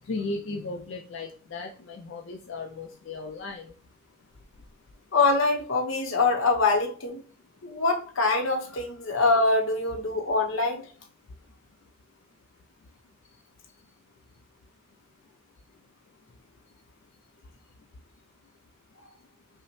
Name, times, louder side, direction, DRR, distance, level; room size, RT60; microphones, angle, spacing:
voice 1, 0.0-3.8, left 3 dB, 70° left, 0.4 m, -36 dB
voice 2, 5.1-7.2 7.6-10.8, left 3 dB, 90° left, 0.9 m, -24 dB
5.4 x 2.0 x 3.1 m
head